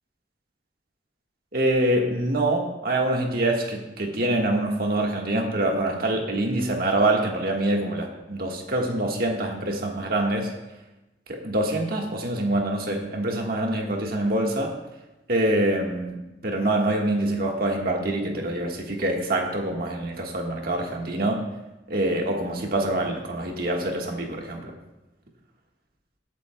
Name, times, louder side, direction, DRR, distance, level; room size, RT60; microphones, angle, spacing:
voice 1, 1.5-10.5 11.3-14.7 15.3-21.4 21.9-24.7, right 1 dB, 60° right, 1 dB, 1.6 m, -25 dB
20.0 x 8.3 x 2.3 m, 1.0 s
head